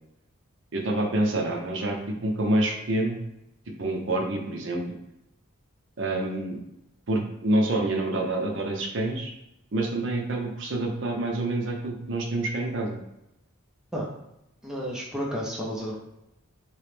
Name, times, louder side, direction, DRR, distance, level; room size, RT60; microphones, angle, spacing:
voice 1, 0.7-3.2 3.8-4.8 6.0-6.6 7.1-9.3 9.7-13.0, right 1 dB, 60° right, 1 dB, 0.6 m, -27 dB
voice 2, 14.6-16.0, equal, 5° right, -4 dB, 0.5 m, -31 dB
3.1 x 2.8 x 3.3 m, 0.87 s
head